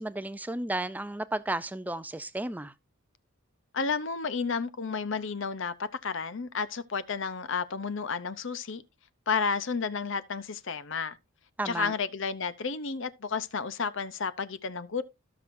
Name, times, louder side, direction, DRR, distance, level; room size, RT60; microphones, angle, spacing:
voice 1, 0.0-2.7 11.6-11.9, right 2 dB, 5° right, 0.4 m, -33 dB
voice 2, 3.7-8.8 9.3-11.2 11.6-15.0, left 5 dB, 55° left, 0.6 m, -31 dB
17.5 x 6.0 x 2.6 m
head